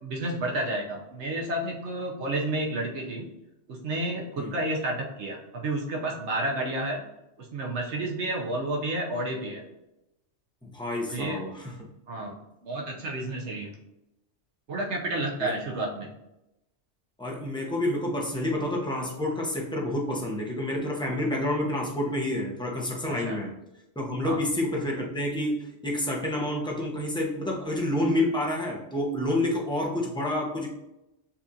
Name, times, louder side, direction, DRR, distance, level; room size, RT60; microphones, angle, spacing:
voice 1, 0.0-3.3 3.7-7.0 7.4-9.6 11.1-11.4 12.1-12.4 12.6-13.7 14.7-16.1 23.2-23.4 24.2-24.4, right 1 dB, 70° right, -1 dB, 1.0 m, -30 dB
voice 2, 10.6-11.8 15.4-15.5 17.2-23.5 24.0-30.7, left 1 dB, 5° left, -2 dB, 0.6 m, -29 dB
7.0 x 2.5 x 2.7 m, 0.90 s
omnidirectional pair, 1.3 m